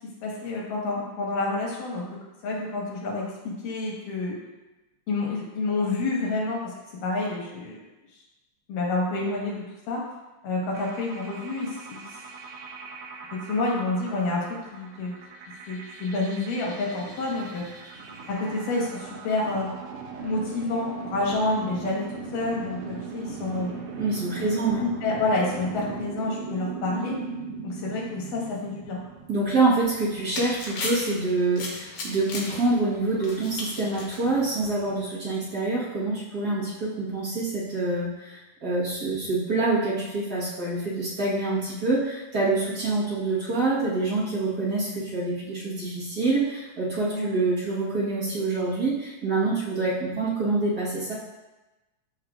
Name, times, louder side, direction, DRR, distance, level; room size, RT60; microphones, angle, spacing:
voice 1, 0.2-4.4 5.1-6.7 7.0-7.8 8.7-10.0 10.4-12.1 13.3-15.2 15.7-17.7 18.3-19.7 20.2-23.8 24.8-27.2 27.6-29.0 47.1-47.3, left 2 dB, 90° left, -3 dB, 3.2 m, -28 dB
sound 1, 10.7-30.2, right 5 dB, 80° right, 1.4 m, -40 dB
sound 2, 16.9-26.4, right 3 dB, 60° right, 2.8 m, -44 dB
voice 2, 24.0-24.8 29.3-51.1, right 3 dB, 45° right, -8 dB, 1.4 m, -26 dB
sound 3, 29.8-35.0, left 2 dB, 65° left, 2.3 m, -37 dB
13.0 x 4.6 x 2.5 m, 1.1 s
omnidirectional pair, 3.7 m